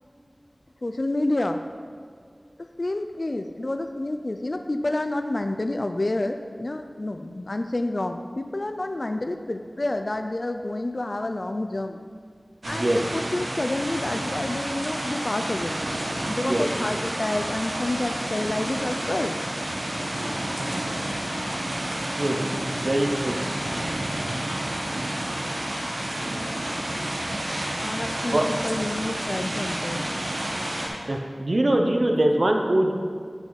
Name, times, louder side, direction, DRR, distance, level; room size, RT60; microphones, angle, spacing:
voice 1, 0.8-1.6 2.8-12.0 12.7-15.8 16.3-19.4 27.8-30.1, left 2 dB, 55° left, 7 dB, 0.4 m, -29 dB
voice 2, 12.6-13.1 16.4-16.7 22.1-22.4 22.8-23.4 28.3-28.5 31.1-32.9, right 1 dB, 60° right, 3 dB, 0.8 m, -22 dB
sound 1, 12.6-30.9, right 1 dB, 80° right, 1.1 m, -30 dB
8.9 x 5.9 x 4.0 m, 2.1 s
wide cardioid pair, 45°, 0 cm